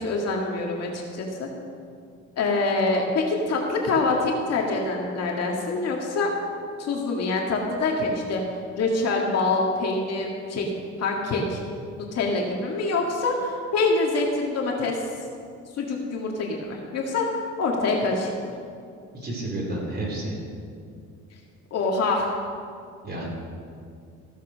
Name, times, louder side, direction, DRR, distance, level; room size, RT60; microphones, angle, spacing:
voice 1, 0.0-1.5 2.4-6.3 6.8-8.4 8.8-10.7 11.0-11.6 12.0-15.0 15.7-18.3 21.7-22.3, left 3 dB, 60° left, 0 dB, 2.1 m, -25 dB
voice 2, 19.1-20.4 23.0-23.3, right 1 dB, 35° right, -3 dB, 4.1 m, -30 dB
15.5 x 8.2 x 6.4 m, 2.3 s
cardioid pair, 125°, 29 cm